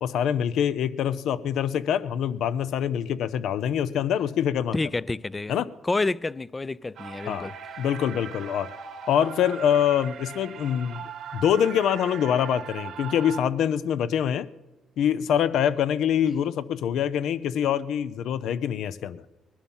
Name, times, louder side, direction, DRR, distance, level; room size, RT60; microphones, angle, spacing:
voice 1, 0.0-4.7 5.5-5.7 7.3-7.5 7.8-8.7 9.1-11.0 11.3-14.5 15.0-19.2, left 9 dB, 75° left, 0.7 m, -25 dB
voice 2, 4.7-5.5 5.8-7.5, left 3 dB, 20° left, 0.4 m, -28 dB
sound 1, 7.0-13.4, right 7 dB, 70° right, 1.1 m, -39 dB
20.0 x 11.5 x 5.5 m
cardioid pair, 90°, 0 cm